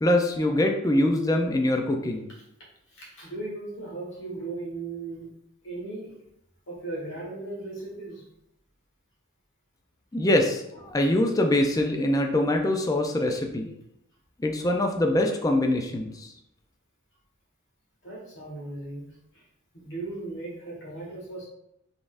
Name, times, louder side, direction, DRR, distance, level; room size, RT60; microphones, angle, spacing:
voice 1, 0.0-2.3 10.1-13.7 14.4-16.3, left 1 dB, 15° left, 3 dB, 0.4 m, -24 dB
voice 2, 2.9-5.3 5.6-6.1 6.7-8.2 10.7-11.0 18.0-19.5 19.7-21.5, right 2 dB, 65° left, -5 dB, 1.5 m, -37 dB
4.0 x 3.5 x 2.5 m, 0.80 s
head